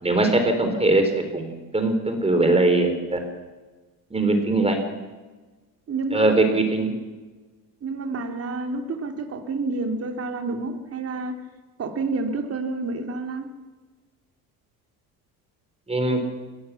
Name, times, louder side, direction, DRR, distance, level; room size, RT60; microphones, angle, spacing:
voice 1, 0.0-3.2 4.1-4.8 6.1-6.9 15.9-16.2, right 2 dB, 15° right, 6 dB, 3.8 m, -21 dB
voice 2, 5.9-6.4 7.8-11.4 11.8-13.5, right 3 dB, 35° right, 4 dB, 3.2 m, -29 dB
21.5 x 17.5 x 7.3 m, 1.3 s
supercardioid pair, 100°, 39 cm